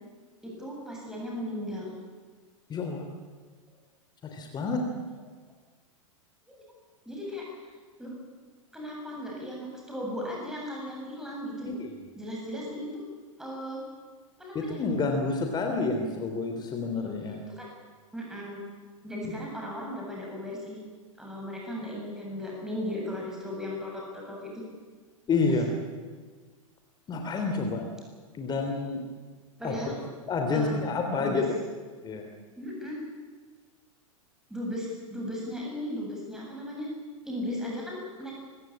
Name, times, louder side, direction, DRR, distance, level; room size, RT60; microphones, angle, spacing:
voice 1, 0.4-1.9 6.5-6.6 7.0-7.5 8.0-8.1 8.7-11.7 12.1-13.0 13.4-13.8 14.4-14.8 17.6-17.7 18.1-18.6 19.0-20.8 21.2-24.6 29.6-29.9 30.5-30.8 31.0-31.4 32.6-33.0 34.5-36.9 37.2-38.3, left 1 dB, 5° right, -2 dB, 7.7 m, -36 dB
voice 2, 2.7-3.1 4.2-4.8 11.7-12.1 14.5-17.4 19.2-19.3 25.3-25.7 27.1-27.8 28.4-29.0 29.6-29.9 30.3-31.5 32.0-32.2, left 3 dB, 25° left, 4 dB, 3.3 m, -29 dB
26.0 x 16.0 x 8.7 m, 1.5 s
figure-of-eight pair, 95°, 17 cm